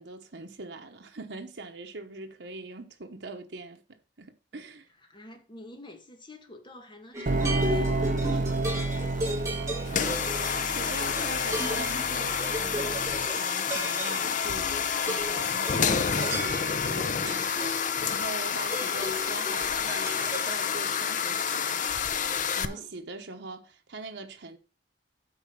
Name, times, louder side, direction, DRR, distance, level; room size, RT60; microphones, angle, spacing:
voice 1, 0.0-4.9 9.9-10.2 10.5-21.9 22.6-24.6, right 3 dB, 80° right, 1.1 m, -42 dB
voice 2, 5.0-9.4 22.7-22.9, left 1 dB, 30° left, 2.0 m, -49 dB
sound 1, 7.1-20.5, equal, 20° right, 3.8 m, -36 dB
sound 2, 7.3-13.3, right 2 dB, 50° right, 0.7 m, -31 dB
sound 3, 9.9-22.6, left 7 dB, 45° left, 0.7 m, -29 dB
9.0 x 4.3 x 7.0 m
head